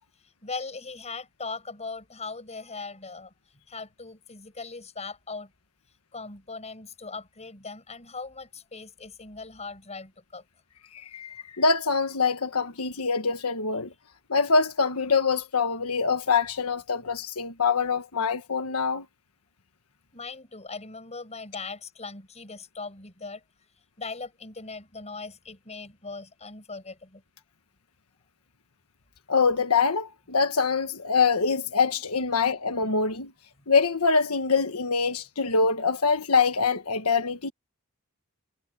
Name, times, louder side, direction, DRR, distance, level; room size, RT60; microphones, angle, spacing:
voice 1, 0.4-3.3 3.7-5.5 6.1-10.4 20.1-23.4 24.0-27.2, left 4 dB, 30° left, 6.6 m, -39 dB
voice 2, 10.9-13.9 14.3-19.0 29.3-33.3 33.7-37.5, left 5 dB, 85° left, 1.4 m, -24 dB
head